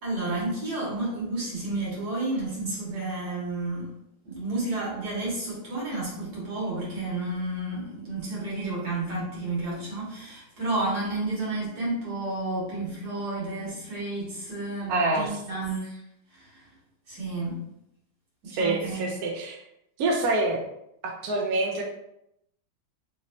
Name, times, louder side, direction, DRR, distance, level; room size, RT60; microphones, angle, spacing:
voice 1, 0.0-3.9 4.3-16.0 16.3-16.6 17.1-17.6 18.5-19.2, right 2 dB, 55° right, -6 dB, 2.0 m, -31 dB
voice 2, 14.9-15.4 18.6-19.6 20.0-20.6 21.0-21.8, right 2 dB, 70° right, 0 dB, 0.8 m, -26 dB
4.1 x 3.1 x 2.6 m, 0.79 s
omnidirectional pair, 2.2 m